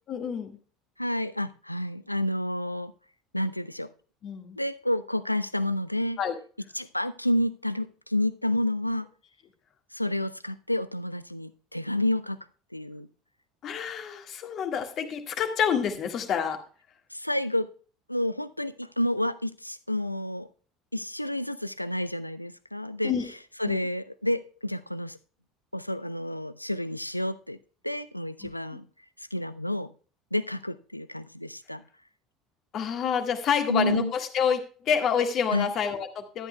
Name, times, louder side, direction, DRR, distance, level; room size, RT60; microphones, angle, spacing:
voice 1, 0.1-0.6 4.2-4.6 6.2-6.3 13.6-16.6 23.0-23.3 23.6-23.9 32.7-36.5, left 7 dB, 40° left, 6 dB, 1.7 m, -28 dB
voice 2, 1.0-2.9 3.3-3.9 4.6-6.2 6.7-9.1 9.9-12.4 12.7-13.1 17.1-17.7 18.1-20.5 20.9-23.1 23.6-25.2 25.7-27.6 27.8-28.8 29.3-29.9 30.3-31.8 33.7-34.1 35.5-35.7, left 1 dB, 90° left, 16 dB, 0.4 m, -29 dB
13.5 x 11.0 x 2.2 m, 0.40 s
figure-of-eight pair, 65°, 0 cm